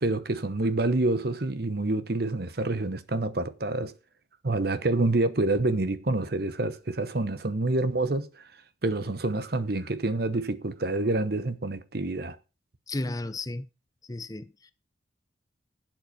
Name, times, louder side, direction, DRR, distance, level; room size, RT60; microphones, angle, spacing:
voice 1, 0.0-3.9 4.4-8.4 8.8-12.4, right 2 dB, 55° right, 1.0 m, -27 dB
voice 2, 12.9-13.7 14.0-14.7, left 2 dB, 20° left, 0.6 m, -34 dB
11.5 x 7.8 x 6.0 m
head